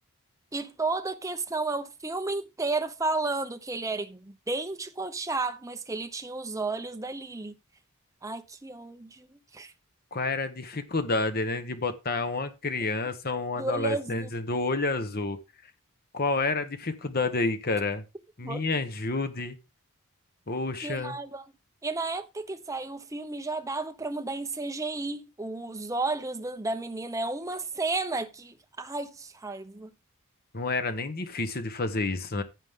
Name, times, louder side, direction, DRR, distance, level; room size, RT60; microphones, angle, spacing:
voice 1, 0.5-7.5 8.2-9.7 13.6-14.3 18.4-18.6 20.8-21.4 21.8-29.9, right 3 dB, 15° right, 0.8 m, -32 dB
voice 2, 10.1-15.4 16.1-18.0 18.4-19.6 20.5-21.2 30.5-32.4, left 3 dB, 45° left, 1.3 m, -29 dB
15.0 x 5.3 x 3.7 m
head